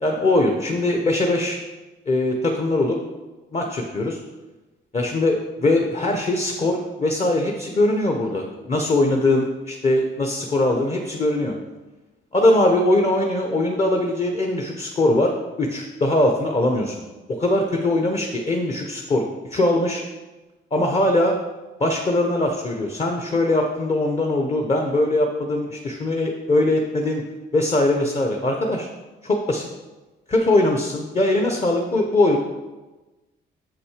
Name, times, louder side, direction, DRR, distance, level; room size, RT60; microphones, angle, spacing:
voice 1, 0.0-1.6 2.1-3.0 3.5-4.2 4.9-11.5 12.3-15.3 15.6-17.0 17.4-20.0 20.7-21.3 21.8-27.2 27.5-28.9 29.2-29.7 30.3-32.4, left 1 dB, 30° left, 3 dB, 0.8 m, -21 dB
6.5 x 6.0 x 4.9 m, 1.2 s
cardioid pair, 90°, 20 cm